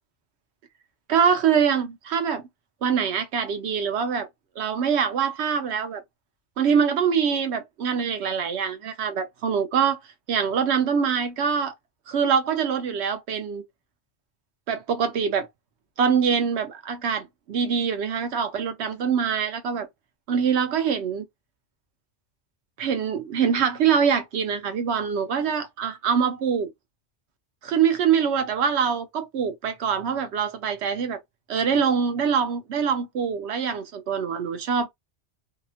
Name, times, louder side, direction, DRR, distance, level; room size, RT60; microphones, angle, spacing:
voice 1, 1.1-2.4 2.8-4.3 4.6-6.0 6.6-10.0 10.3-11.7 12.1-13.6 14.7-15.5 16.0-19.9 20.3-21.2 22.8-26.7 27.6-31.2 31.5-34.9, right 7 dB, 80° right, 0.9 m, -24 dB
2.8 x 2.1 x 2.7 m
omnidirectional pair, 1.1 m